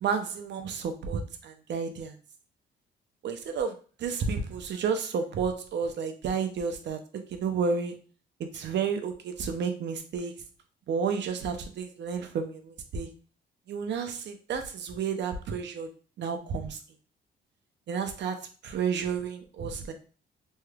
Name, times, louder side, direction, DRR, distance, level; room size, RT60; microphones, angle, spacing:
voice 1, 0.0-2.1 3.2-3.7 4.0-7.0 7.3-7.9 8.4-10.3 10.9-13.1 13.7-15.9 16.2-16.8 17.9-18.4 18.6-19.9, right 6 dB, 60° right, 7 dB, 0.7 m, -31 dB
3.2 x 3.2 x 2.3 m, 0.39 s
cardioid pair, 90°, 20 cm